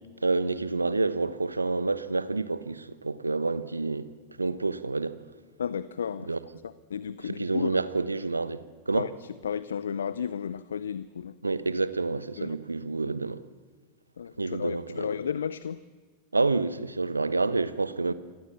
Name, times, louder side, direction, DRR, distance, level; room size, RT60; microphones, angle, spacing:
voice 1, 0.2-4.1 4.4-5.2 6.3-6.4 7.4-9.0 11.4-13.4 14.4-15.1 16.3-18.1, right 3 dB, 80° right, 1.1 m, -28 dB
voice 2, 5.6-6.4 6.6-7.8 8.9-11.4 12.4-12.6 14.2-15.8, left 7 dB, 70° left, 0.7 m, -33 dB
29.0 x 23.5 x 7.3 m
figure-of-eight pair, 90°, 0 cm